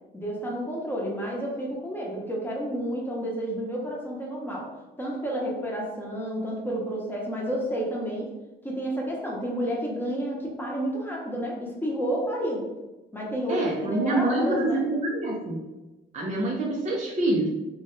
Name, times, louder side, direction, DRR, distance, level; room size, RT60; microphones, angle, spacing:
voice 1, 0.1-4.7 5.0-8.3 8.6-12.6 13.1-14.8, equal, 10° left, -3 dB, 0.9 m, -30 dB
voice 2, 13.5-15.6 16.1-17.5, right 1 dB, 35° right, -3 dB, 0.6 m, -26 dB
2.7 x 2.2 x 3.2 m, 1.1 s
cardioid pair, 90°, 20 cm